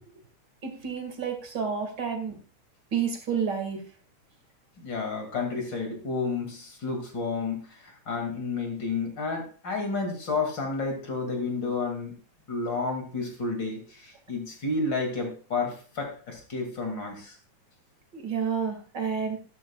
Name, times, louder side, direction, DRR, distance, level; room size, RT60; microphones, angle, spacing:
voice 1, 0.6-2.4 2.9-3.8 18.1-19.4, right 6 dB, 40° right, 4 dB, 2.3 m, -30 dB
voice 2, 4.8-12.2 12.5-17.4, left 4 dB, 35° left, 4 dB, 2.7 m, -31 dB
12.5 x 12.0 x 2.4 m, 0.37 s
omnidirectional pair, 3.6 m